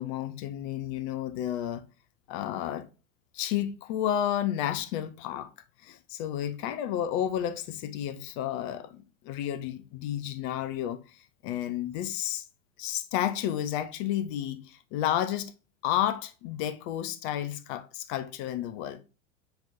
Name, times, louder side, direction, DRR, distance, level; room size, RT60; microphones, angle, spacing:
voice 1, 0.0-1.8 2.3-2.9 3.3-5.5 5.8-12.4 12.8-15.5 15.8-19.0, left 11 dB, 40° left, 0.5 m, -31 dB
6.4 x 3.0 x 2.5 m
figure-of-eight pair, 80°, 41 cm